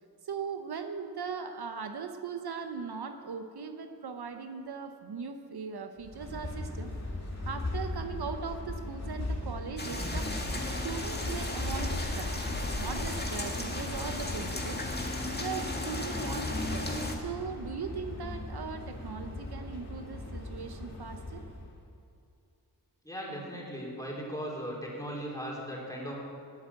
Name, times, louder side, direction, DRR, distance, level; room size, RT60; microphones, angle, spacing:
voice 1, 0.2-6.9 7.4-10.3 10.7-12.4 12.8-14.8 15.3-21.4, right 6 dB, 70° right, 7 dB, 0.9 m, -39 dB
sound 1, 6.0-21.7, left 2 dB, 40° left, 2.6 m, -37 dB
sound 2, 9.8-17.1, left 2 dB, 25° left, 1.8 m, -36 dB
voice 2, 23.0-26.1, equal, 10° left, -4 dB, 4.0 m, -38 dB
12.0 x 8.5 x 8.5 m, 2.6 s
wide cardioid pair, 65°, 39 cm